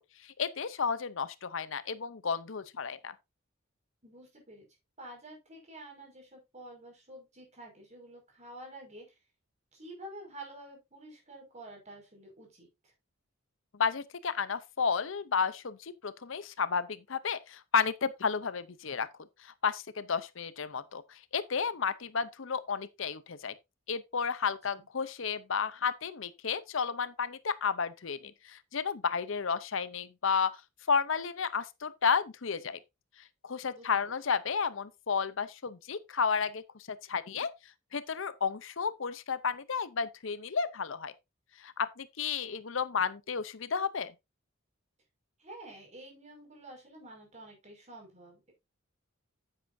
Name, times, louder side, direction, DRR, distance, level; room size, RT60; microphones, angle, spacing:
voice 1, 0.4-3.1 13.8-19.1 19.4-23.5 23.9-30.6 30.9-32.8 33.4-36.6 37.1-37.5 37.9-41.1 41.6-44.1, left 6 dB, 65° left, 0.7 m, -32 dB
voice 2, 4.0-4.7 5.0-9.2 9.7-12.9 24.4-24.9 33.7-34.1 45.4-48.5, right 1 dB, 30° right, 5.6 m, -49 dB
9.9 x 8.8 x 2.7 m
head